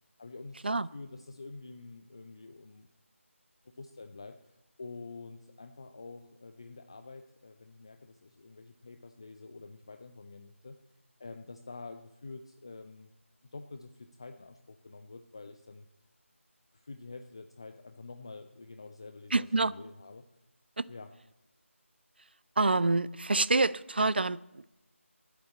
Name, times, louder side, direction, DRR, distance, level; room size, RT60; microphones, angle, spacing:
voice 1, 0.2-2.9 3.8-10.8 11.2-13.1 13.5-15.9 16.7-20.3 20.9-21.1, left 3 dB, 20° left, 0.4 m, -47 dB
voice 2, 19.3-19.7 20.8-20.9 22.6-24.7, right 3 dB, 45° right, 0.4 m, -27 dB
11.5 x 8.2 x 8.4 m
figure-of-eight pair, 165°, 7 cm